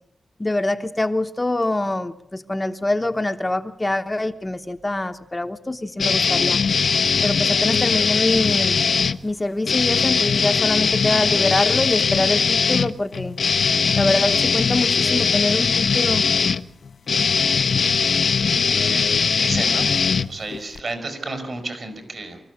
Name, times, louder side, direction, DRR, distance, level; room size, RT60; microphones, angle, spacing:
voice 1, 0.4-6.6 7.2-8.8 9.2-13.4 14.0-16.3, left 2 dB, 20° left, 7 dB, 1.0 m, -24 dB
sound 1, 6.0-9.2 9.6-20.8, left 5 dB, 75° left, 0.8 m, -20 dB
voice 2, 18.4-20.0 20.2-22.4, right 2 dB, 55° right, 7 dB, 6.2 m, -32 dB
24.5 x 14.5 x 8.6 m, 0.78 s
wide cardioid pair, 80°, 0 cm